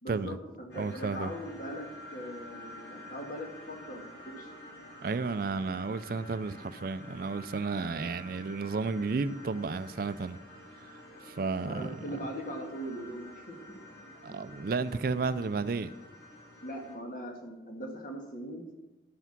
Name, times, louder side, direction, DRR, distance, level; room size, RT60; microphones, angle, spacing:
voice 1, 0.0-4.5 7.9-8.1 11.3-13.6 14.0-14.1 16.6-18.7, equal, 50° left, 2 dB, 1.7 m, -41 dB
sound 1, 0.7-17.0, left 1 dB, 80° left, 2.8 m, -49 dB
voice 2, 0.7-1.3 5.0-10.4 10.8-11.9 14.2-15.9, right 4 dB, 55° right, 14 dB, 0.4 m, -32 dB
12.0 x 5.7 x 6.0 m, 1.1 s
head